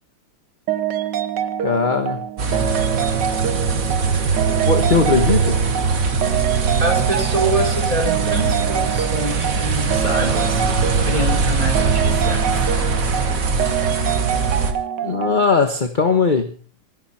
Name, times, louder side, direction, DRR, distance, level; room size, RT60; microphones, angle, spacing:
sound 1, 0.7-15.4, right 10 dB, 60° right, 1.5 m, -25 dB
voice 1, 1.6-2.2 4.7-5.6 15.0-16.5, left 4 dB, 30° left, 7 dB, 1.1 m, -19 dB
sound 2, 2.4-14.7, right 4 dB, 40° right, 1.9 m, -21 dB
voice 2, 6.8-10.6 11.0-12.5, right 1 dB, 15° right, 2 dB, 5.0 m, -25 dB
25.5 x 10.5 x 4.3 m, 0.39 s
omnidirectional pair, 2.3 m